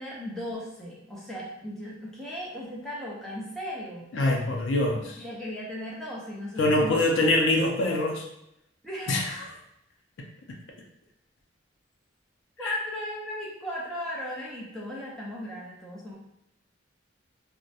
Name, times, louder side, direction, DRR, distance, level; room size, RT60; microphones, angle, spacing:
voice 1, 0.0-4.1 5.2-7.0 8.8-9.2 12.6-16.2, equal, 5° left, -6 dB, 0.5 m, -36 dB
voice 2, 4.1-5.1 6.6-8.3 9.1-9.5 12.6-12.7, left 2 dB, 75° left, 1 dB, 0.5 m, -24 dB
2.4 x 2.1 x 2.7 m, 0.81 s
head